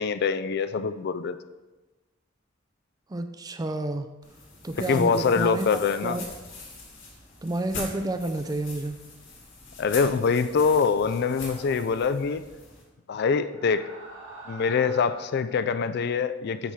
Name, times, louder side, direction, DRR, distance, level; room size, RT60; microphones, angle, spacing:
voice 1, 0.0-1.4 4.9-6.2 9.8-12.4 13.1-13.9 14.5-16.7, left 5 dB, 60° left, 12 dB, 0.4 m, -24 dB
voice 2, 3.1-4.1 4.6-5.7 6.0-6.2 7.4-9.0, right 2 dB, 20° right, 8 dB, 0.4 m, -30 dB
sound 1, 4.2-12.8, left 3 dB, 80° left, 2.0 m, -42 dB
sound 2, 10.9-12.1 13.4-15.5, right 2 dB, 85° right, 1.6 m, -46 dB
8.9 x 5.6 x 3.2 m, 1.1 s
head